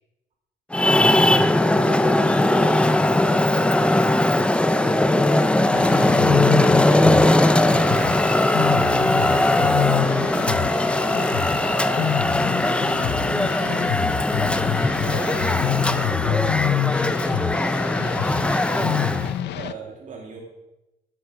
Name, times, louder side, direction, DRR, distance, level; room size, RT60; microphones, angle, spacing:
Traffic noise roadway noise, 0.7-19.4, left 1 dB, 5° left, 0.6 m, -20 dB
voice 1, 0.9-4.4 4.7-6.8 7.6-12.2 12.6-14.4 15.0-17.4 18.4-19.3, right 2 dB, 80° right, 2 dB, 4.8 m, -37 dB
sound 1, 5.7-19.7, left 12 dB, 75° left, 0.6 m, -27 dB
voice 2, 18.7-19.1 19.5-20.4, right 5 dB, 45° right, 0 dB, 2.3 m, -39 dB
14.0 x 10.5 x 6.0 m, 0.96 s
cardioid pair, 135°, 18 cm